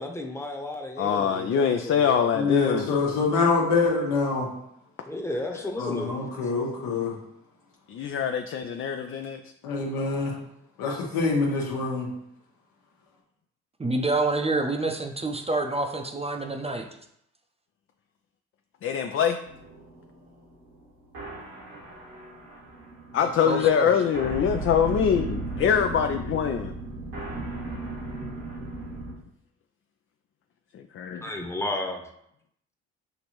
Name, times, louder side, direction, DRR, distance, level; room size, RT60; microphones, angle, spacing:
voice 1, 0.0-2.3 5.1-6.2 31.2-32.0, left 1 dB, 10° left, 2 dB, 0.9 m, -33 dB
voice 2, 1.0-2.9 5.5-5.6 7.9-9.4 18.8-19.4 23.1-26.7 30.7-31.2, left 8 dB, 40° left, 6 dB, 0.4 m, -24 dB
voice 3, 2.3-4.5 5.8-7.1 9.6-10.4 10.8-12.1, left 4 dB, 75° left, -2 dB, 1.2 m, -25 dB
voice 4, 13.8-16.9 23.5-23.9, right 2 dB, 20° right, 3 dB, 0.6 m, -27 dB
sound 1, 19.4-29.1, right 2 dB, 80° right, 1.6 m, -36 dB
6.4 x 2.5 x 3.0 m, 0.75 s
hypercardioid pair, 45°, 34 cm